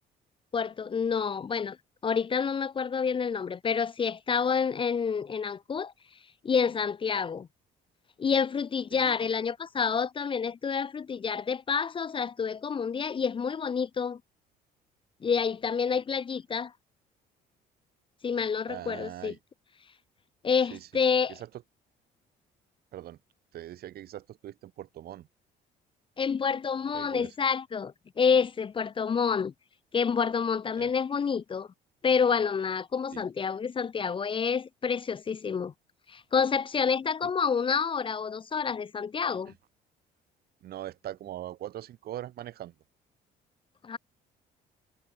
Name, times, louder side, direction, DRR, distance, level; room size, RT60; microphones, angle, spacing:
voice 1, 0.5-1.8 2.0-5.9 6.4-7.5 8.2-14.2 15.2-16.7 18.2-19.3 20.4-21.4 26.2-29.5 29.9-31.7 32.0-35.7 36.1-39.5 43.8-44.0, left 6 dB, 30° left, 0.8 m, -28 dB
voice 2, 18.7-19.4 20.7-20.9 21.3-21.5 22.9-23.2 23.5-25.3 26.9-27.3 30.8-30.9 33.1-33.2 37.2-37.3 39.4-39.5 40.6-42.7, right 12 dB, 65° right, 4.8 m, -41 dB
cardioid pair, 110°, 17 cm